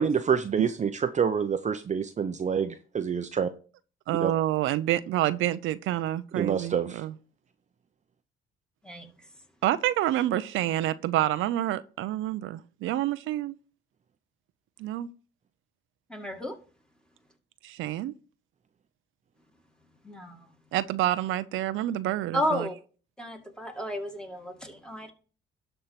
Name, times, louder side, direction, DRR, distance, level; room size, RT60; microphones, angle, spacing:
voice 1, 0.0-3.5 4.2-4.3 6.3-7.0, right 7 dB, 35° right, 0.7 m, -27 dB
voice 2, 4.1-7.1 9.6-13.5 14.8-15.1 17.6-18.1 20.7-22.7, right 14 dB, 90° right, 0.5 m, -28 dB
voice 3, 16.1-16.6 20.0-20.5 22.3-22.7 23.2-25.1, left 1 dB, 5° left, 2.3 m, -32 dB
12.0 x 4.5 x 5.8 m
cardioid pair, 90°, 20 cm